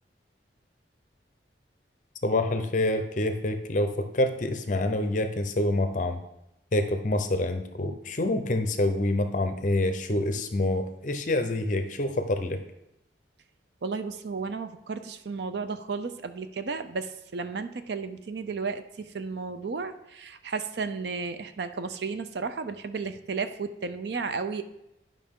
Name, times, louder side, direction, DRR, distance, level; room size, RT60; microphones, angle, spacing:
voice 1, 2.2-6.2 6.7-12.6, left 1 dB, 40° left, 7 dB, 0.6 m, -27 dB
voice 2, 13.8-24.6, right 4 dB, 65° right, 10 dB, 0.5 m, -33 dB
11.0 x 5.3 x 3.6 m, 0.87 s
head